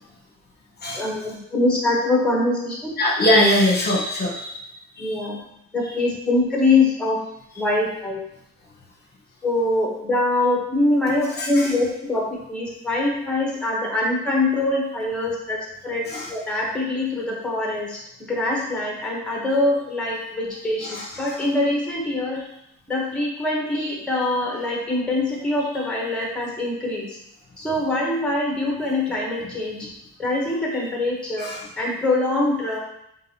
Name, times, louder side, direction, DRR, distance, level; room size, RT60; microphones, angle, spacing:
voice 1, 0.9-3.0 5.0-5.4 5.7-7.2 7.6-8.2 9.4-22.4 22.9-27.2 27.6-29.9 30.2-31.5 31.8-32.8, left 2 dB, 5° left, -2 dB, 1.0 m, -23 dB
voice 2, 3.0-4.6 5.0-5.2 11.3-11.7 16.1-16.3 20.8-21.4 31.4-31.7, left 1 dB, 35° left, -3 dB, 1.1 m, -22 dB
3.9 x 3.7 x 2.8 m, 0.80 s
cardioid pair, 90°, 30 cm